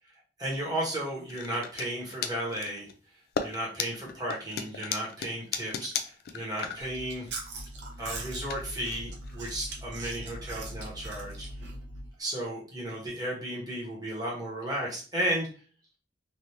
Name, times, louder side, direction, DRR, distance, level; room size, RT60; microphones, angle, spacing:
voice 1, 0.4-2.9 3.4-7.3 8.0-11.5 12.2-15.5, right 1 dB, 20° right, -4 dB, 1.2 m, -34 dB
sound 1, 1.3-1.9 2.1-2.9 3.4-9.7, left 6 dB, 55° left, 0.4 m, -36 dB
Chewing mastication, 6.8-12.1, right 2 dB, 75° right, 0.7 m, -40 dB
3.3 x 2.6 x 2.8 m, 0.38 s
head